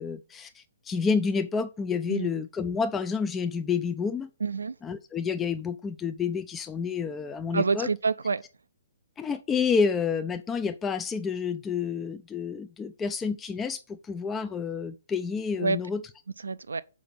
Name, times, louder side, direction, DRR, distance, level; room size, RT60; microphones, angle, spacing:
voice 1, 0.0-4.3 4.8-7.9 9.2-16.0, left 5 dB, 15° left, 0.4 m, -29 dB
voice 2, 4.4-4.8 7.5-8.4 15.6-15.8 16.4-16.8, right 4 dB, 70° right, 0.4 m, -27 dB
6.1 x 5.0 x 5.8 m
figure-of-eight pair, 125°, 0 cm